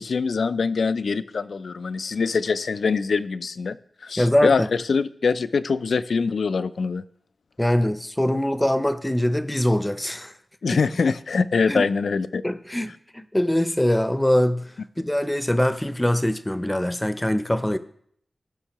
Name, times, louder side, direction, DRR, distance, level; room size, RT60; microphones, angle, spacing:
voice 1, 0.0-3.8 4.0-4.6 4.9-7.0 10.6-12.4, left 5 dB, 85° left, 0.3 m, -23 dB
voice 2, 4.2-4.7 7.6-10.3 11.7-11.9 12.4-14.7 15.0-17.8, left 1 dB, 10° left, 0.5 m, -23 dB
16.0 x 5.5 x 3.0 m
wide cardioid pair, 85°, 0 cm